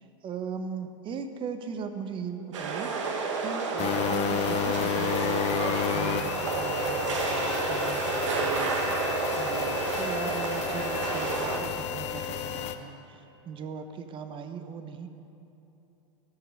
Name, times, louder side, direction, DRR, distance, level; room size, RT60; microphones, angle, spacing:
voice 1, 0.0-15.1, right 6 dB, 35° right, 8 dB, 0.9 m, -39 dB
sound 1, 2.5-11.6, right 4 dB, 85° right, 1.3 m, -30 dB
sound 2, 3.8-12.7, left 9 dB, 45° left, 0.7 m, -31 dB
17.5 x 6.2 x 5.3 m, 3.0 s
hypercardioid pair, 110°, 15 cm